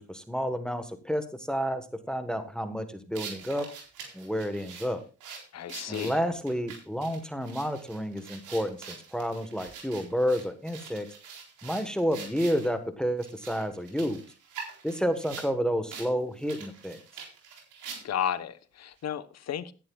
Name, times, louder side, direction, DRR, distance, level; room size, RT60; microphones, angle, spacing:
voice 1, 0.0-3.7 4.1-5.0 5.9-11.1 11.6-14.2 14.8-17.0, equal, ahead, 1.2 m, -30 dB
sound 1, 3.1-12.7 13.2-15.5 15.9-16.1 16.4-18.3, right 6 dB, 85° right, 4.1 m, -44 dB
voice 2, 5.5-6.2 18.0-19.7, left 9 dB, 60° left, 1.1 m, -33 dB
17.0 x 10.5 x 2.3 m
cardioid pair, 90°, 30 cm